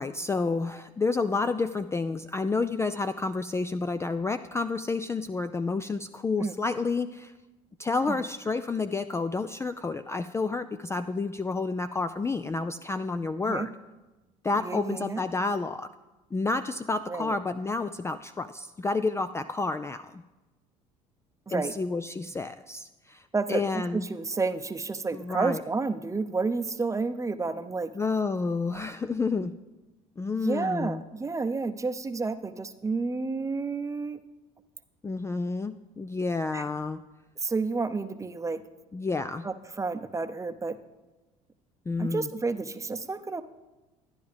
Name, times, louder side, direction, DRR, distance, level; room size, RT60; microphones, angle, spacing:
voice 1, 0.0-7.3 7.8-13.7 14.4-15.9 16.3-20.2 21.5-24.0 25.1-25.6 27.9-29.5 30.2-31.0 35.0-37.0 38.9-39.5 41.9-42.3, left 3 dB, 15° left, 10 dB, 0.3 m, -30 dB
voice 2, 14.6-15.2 17.1-17.4 21.5-21.7 23.3-27.9 28.7-28.8 30.3-34.2 36.5-36.6 37.4-38.6 39.4-40.8 42.0-43.4, right 4 dB, 15° right, 11 dB, 0.7 m, -30 dB
12.5 x 10.5 x 3.4 m, 1.1 s
hypercardioid pair, 65°, 18 cm